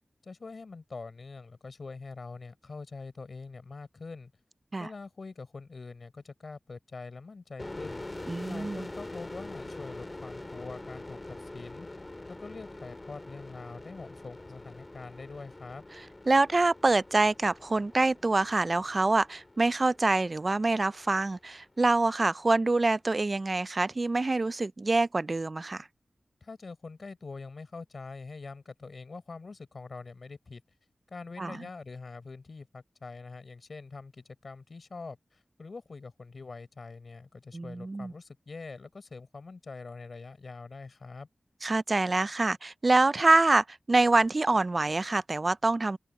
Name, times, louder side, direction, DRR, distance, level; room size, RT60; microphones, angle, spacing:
voice 1, 0.2-4.3 4.8-8.0 8.5-11.9 12.3-15.8 26.4-30.6 31.1-41.3, left 4 dB, 65° left, 4.7 m, -44 dB
sound 1, 7.6-21.0, left 2 dB, 30° left, 2.3 m, -44 dB
voice 2, 8.3-8.9 16.3-25.9 31.4-31.6 37.5-38.1 41.6-46.0, right 3 dB, 45° right, 0.4 m, -25 dB
wide cardioid pair, 65°, 0 cm